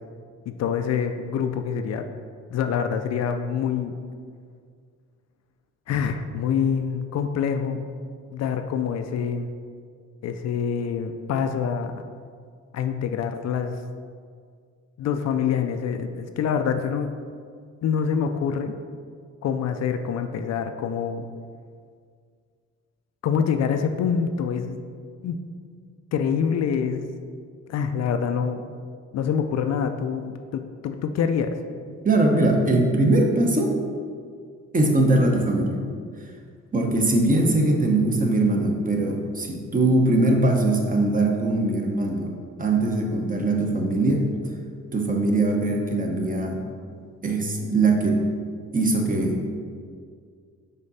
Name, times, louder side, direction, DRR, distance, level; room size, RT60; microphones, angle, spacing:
voice 1, 0.5-2.1 2.5-3.9 5.9-7.8 8.3-9.5 10.2-12.0 12.7-13.8 15.0-17.1 17.8-18.7 19.4-21.3 23.2-24.9 25.2-25.4 26.1-27.0 27.7-28.7 29.1-31.6, left 7 dB, 60° left, 7 dB, 0.5 m, -26 dB
voice 2, 32.0-33.8 34.7-35.8 36.7-42.3 42.6-44.3 44.9-46.6 47.2-48.2 48.7-49.5, right 2 dB, 25° right, 1 dB, 0.9 m, -21 dB
5.3 x 4.7 x 4.1 m, 2.1 s
cardioid pair, 90°, 30 cm